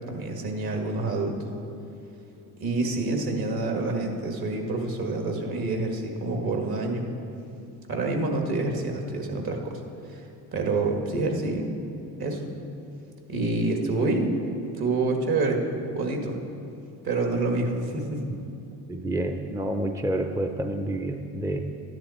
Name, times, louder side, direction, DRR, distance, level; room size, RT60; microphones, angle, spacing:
voice 1, 0.1-1.4 2.6-7.1 7.9-9.8 10.1-10.2 10.5-11.7 12.2-12.5 13.3-14.3 14.8-15.6 15.9-16.4 17.0-18.2, right 2 dB, 55° right, 2 dB, 2.0 m, -27 dB
voice 2, 18.9-21.6, right 1 dB, 5° right, 5 dB, 0.6 m, -28 dB
13.0 x 10.5 x 4.3 m, 2.6 s
supercardioid pair, 80°, 44 cm